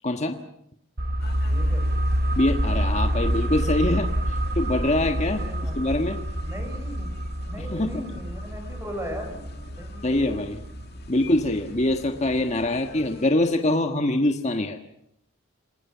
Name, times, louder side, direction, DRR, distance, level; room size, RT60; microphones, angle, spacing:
voice 1, 0.0-0.4 2.4-5.4 5.8-6.2 7.6-8.0 10.0-10.6 11.1-14.8, left 1 dB, 35° left, 5 dB, 1.5 m, -24 dB
sound 1, 1.0-12.3 12.6-12.7, equal, 45° right, 1.3 m, -28 dB
sound 2, 1.2-13.3, left 2 dB, 50° left, 2.2 m, -46 dB
voice 2, 1.4-1.8 5.3-5.8 6.4-7.1 7.5-10.4, equal, 15° right, 4 dB, 7.0 m, -38 dB
28.5 x 20.0 x 7.3 m, 0.75 s
head